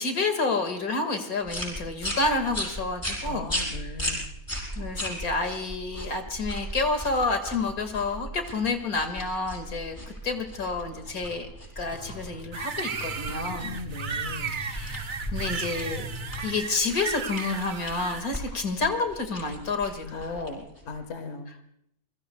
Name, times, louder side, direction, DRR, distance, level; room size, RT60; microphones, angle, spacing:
voice 1, 0.0-4.0 4.8-11.5 11.8-13.8 14.5-15.0 15.3-16.1 16.4-20.7, left 3 dB, 90° left, 6 dB, 2.5 m, -29 dB
sound 1, 1.5-21.0, equal, 15° left, 6.2 m, -37 dB
voice 2, 3.2-4.3 13.3-14.6 20.0-20.5 20.8-21.5, left 4 dB, 50° left, 7 dB, 1.7 m, -39 dB
sound 2, 11.2-16.5, equal, 5° right, 5.1 m, -41 dB
sound 3, 12.5-18.2, right 6 dB, 45° right, 0.7 m, -35 dB
27.5 x 22.5 x 2.3 m, 0.72 s
omnidirectional pair, 1.5 m